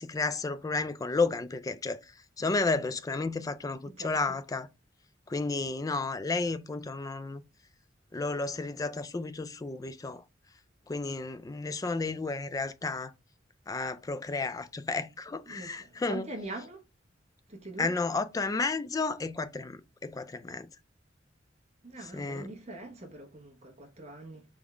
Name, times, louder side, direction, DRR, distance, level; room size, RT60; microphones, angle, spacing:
voice 1, 0.0-2.0 2.4-4.7 5.3-7.4 8.1-10.2 10.9-13.1 13.7-16.3 17.8-20.7 22.1-22.5, left 3 dB, 20° left, 0.3 m, -32 dB
voice 2, 15.5-16.8 17.5-17.9 21.8-24.4, right 2 dB, 35° right, 1.1 m, -43 dB
3.6 x 3.4 x 3.6 m
head